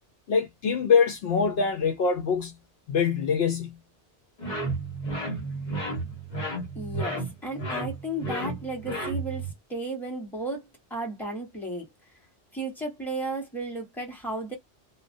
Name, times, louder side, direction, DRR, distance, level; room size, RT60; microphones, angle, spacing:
voice 1, 0.3-2.6 2.9-3.8, left 6 dB, 65° left, 0.7 m, -24 dB
sound 1, 4.4-9.5, right 2 dB, 40° left, 1.1 m, -32 dB
voice 2, 6.7-11.8 12.5-14.5, right 2 dB, ahead, 1.0 m, -34 dB
2.5 x 2.1 x 2.5 m
omnidirectional pair, 1.2 m